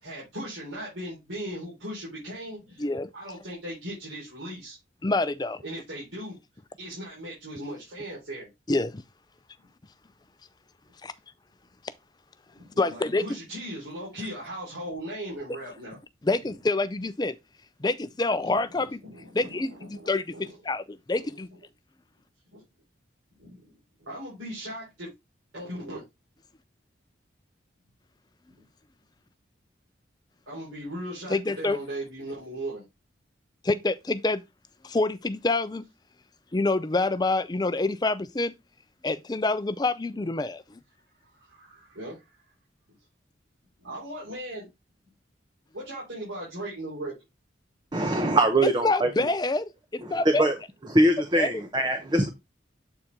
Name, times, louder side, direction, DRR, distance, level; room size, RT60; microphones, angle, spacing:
voice 1, 0.0-2.9 3.1-4.8 5.6-6.3 6.8-8.5 12.6-16.0 16.4-16.6 18.4-20.5 21.1-21.3 22.5-22.6 23.4-23.7 24.0-25.1 25.5-26.0 30.5-32.8 40.1-40.3 41.2-42.2 43.8-44.7 45.7-47.1, right 1 dB, 85° right, 4.3 m, -38 dB
voice 2, 2.8-3.1 5.0-5.6 8.7-9.0 11.0-11.1 12.8-13.2 16.2-17.4 17.8-19.0 19.3-21.5 31.3-31.8 33.6-34.4 34.8-35.9 36.5-38.5 39.0-40.6 48.8-50.4 51.4-51.5, left 2 dB, 20° left, 0.4 m, -27 dB
voice 3, 47.9-49.3 50.0-50.6 50.9-52.3, right 1 dB, 25° right, 0.7 m, -23 dB
7.9 x 4.3 x 3.6 m
head